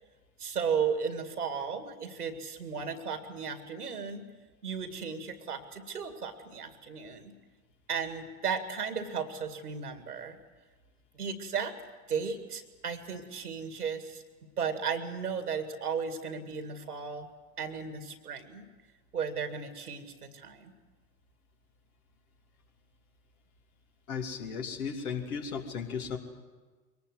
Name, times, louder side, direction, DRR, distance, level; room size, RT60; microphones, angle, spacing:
voice 1, 0.4-4.2 4.6-7.3 7.9-10.4 11.1-11.7 12.1-14.2 14.6-17.3 17.6-18.7 19.1-20.7, right 6 dB, 85° right, 8 dB, 2.2 m, -35 dB
voice 2, 24.1-26.2, left 6 dB, 70° left, 3 dB, 2.9 m, -35 dB
23.0 x 19.0 x 7.9 m, 1.4 s
hypercardioid pair, 85°, 44 cm